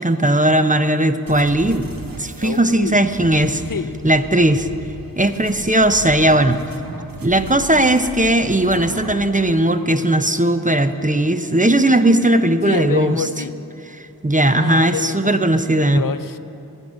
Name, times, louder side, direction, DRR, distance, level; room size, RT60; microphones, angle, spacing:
voice 1, 0.0-1.9 2.2-3.6 4.0-4.7 5.2-6.6 7.2-13.2 13.9-16.1, right 1 dB, 20° right, 9 dB, 0.6 m, -17 dB
sound 1, 1.3-9.3, right 3 dB, 65° right, 1.2 m, -36 dB
voice 2, 2.4-3.0 3.7-3.9 12.7-13.6 14.6-16.4, left 7 dB, 60° left, 14 dB, 0.5 m, -28 dB
21.0 x 9.1 x 6.3 m, 2.8 s
wide cardioid pair, 45°, 38 cm